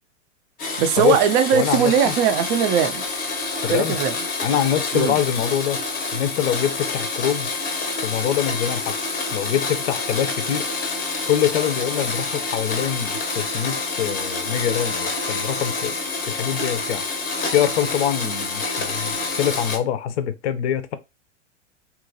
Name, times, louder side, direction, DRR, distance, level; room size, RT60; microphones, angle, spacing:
Domestic sounds home sounds, 0.6-19.8, left 3 dB, 25° left, 0.7 m, -27 dB
voice 1, 0.8-3.0 3.7-4.1 4.9-5.1, right 8 dB, 35° right, 0.4 m, -19 dB
voice 2, 1.5-2.1 3.6-4.0 4.4-5.8 6.1-7.5 8.0-8.9 9.3-10.7 11.3-15.9 16.3-17.0 17.5-20.9, left 10 dB, 65° left, 0.6 m, -24 dB
2.8 x 2.4 x 2.6 m
hypercardioid pair, 110°, 37 cm